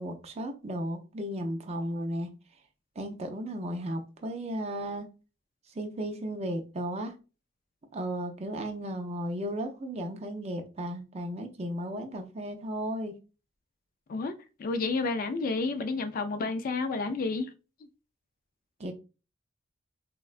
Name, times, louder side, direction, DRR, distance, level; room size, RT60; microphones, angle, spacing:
voice 1, 0.0-2.3 3.0-5.1 5.8-7.2 7.9-13.1 18.8-18.9, equal, 30° right, 0.5 m, -35 dB
voice 2, 14.6-17.5, left 3 dB, 45° left, 0.3 m, -30 dB
3.6 x 2.1 x 2.4 m
head